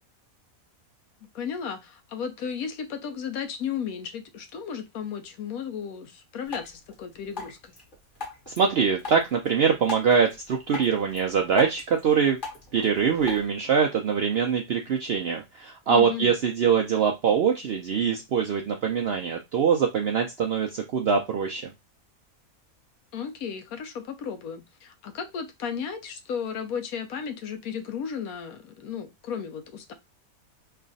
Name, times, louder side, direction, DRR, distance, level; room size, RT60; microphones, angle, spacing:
voice 1, 1.3-7.7 15.9-16.3 23.1-29.9, left 7 dB, 90° left, 1.2 m, -34 dB
Drip, 6.5-13.5, left 3 dB, 40° left, 1.5 m, -41 dB
voice 2, 8.5-12.4 12.7-21.7, right 6 dB, 65° right, 0.6 m, -23 dB
3.2 x 2.3 x 3.9 m
omnidirectional pair, 1.5 m